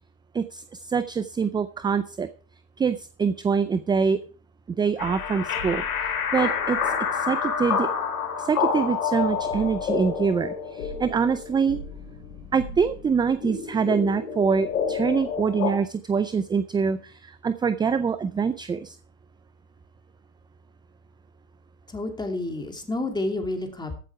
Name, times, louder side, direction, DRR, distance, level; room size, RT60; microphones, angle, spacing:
voice 1, 0.3-2.3 2.8-4.2 4.7-5.8 6.3-7.9 8.4-11.8 12.5-19.0, right 6 dB, 10° right, 14 dB, 0.4 m, -25 dB
sound 1, 5.0-15.7, left 6 dB, 85° left, 2.7 m, -29 dB
voice 2, 21.9-24.0, left 2 dB, 10° left, 4 dB, 2.8 m, -29 dB
14.5 x 8.1 x 4.7 m, 0.40 s
hypercardioid pair, 95°, 42 cm